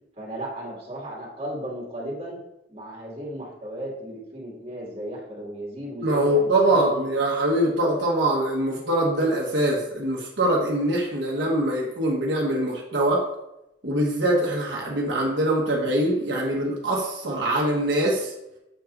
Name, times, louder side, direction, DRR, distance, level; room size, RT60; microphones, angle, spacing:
voice 1, 0.2-2.4 2.7-7.1, right 1 dB, 35° right, -4 dB, 2.2 m, -35 dB
voice 2, 6.0-13.2 13.8-18.3, right 1 dB, 80° right, -3 dB, 1.3 m, -23 dB
7.8 x 5.9 x 2.6 m, 0.89 s
head